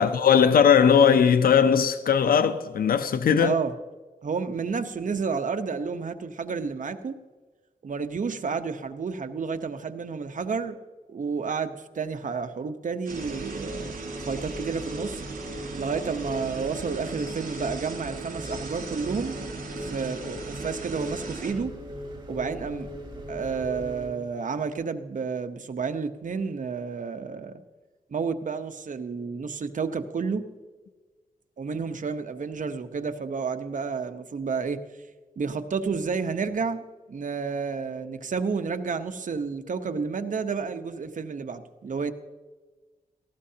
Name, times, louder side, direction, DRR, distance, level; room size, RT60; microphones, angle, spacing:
voice 1, 0.0-3.5, left 7 dB, 90° left, 0.6 m, -19 dB
voice 2, 3.4-3.7 4.2-7.2 7.8-10.8 11.1-13.9 14.3-15.2 15.8-19.4 19.9-21.7 22.3-22.9 23.3-27.6 28.1-30.5 31.6-34.8 35.4-42.1, right 5 dB, 60° right, 1.0 m, -30 dB
sound 1, 13.1-24.1, equal, 30° right, 3.4 m, -38 dB
sound 2, 13.1-21.5, right 4 dB, 80° right, 4.3 m, -39 dB
18.5 x 15.0 x 2.9 m
wide cardioid pair, 80°, 15 cm